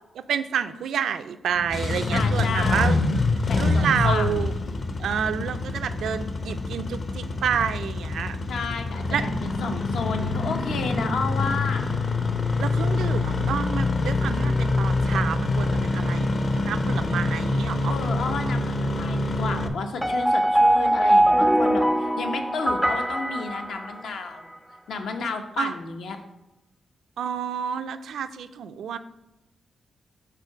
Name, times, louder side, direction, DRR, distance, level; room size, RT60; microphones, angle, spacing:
voice 1, 0.3-3.0 3.5-4.5 5.0-8.4 9.1-9.2 12.6-17.9 25.6-25.7 27.2-29.0, right 8 dB, 85° right, 11 dB, 0.4 m, -29 dB
Engine starting, 1.6-19.7, left 2 dB, 40° left, 0.6 m, -25 dB
voice 2, 2.1-3.0 3.4-4.5 8.5-11.9 17.9-24.5 24.9-26.2, left 4 dB, 75° left, 5 dB, 0.8 m, -32 dB
sound 1, 20.0-24.3, right 1 dB, ahead, 0.3 m, -21 dB
5.8 x 3.7 x 5.8 m, 0.95 s
wide cardioid pair, 145°, 0 cm